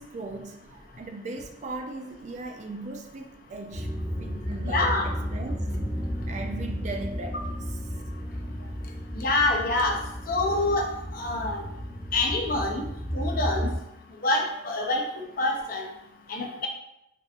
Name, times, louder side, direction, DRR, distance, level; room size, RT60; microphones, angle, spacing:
voice 1, 0.0-3.9 4.2-5.7 6.3-7.6 7.9-8.0 8.6-8.7, right 2 dB, 40° right, 4 dB, 0.4 m, -38 dB
sound 1, 3.7-13.8, equal, 10° right, 0.9 m, -33 dB
voice 2, 4.6-5.1 9.2-10.0 10.3-10.9 11.1-11.6 12.1-12.8 13.1-13.7 14.2-15.0 15.4-15.8 16.3-16.7, left 2 dB, 55° left, 0 dB, 0.6 m, -26 dB
3.4 x 2.8 x 2.5 m, 0.82 s
head